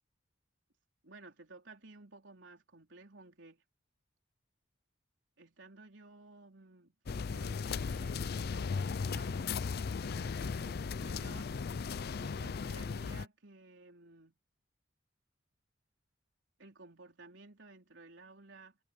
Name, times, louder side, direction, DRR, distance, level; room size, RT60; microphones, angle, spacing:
voice 1, 1.0-3.6 5.4-9.5 10.0-11.6 12.2-14.3 16.6-18.8, right 3 dB, 75° right, 4.2 m, -55 dB
sound 1, 7.1-13.3, left 5 dB, 55° left, 0.5 m, -36 dB
head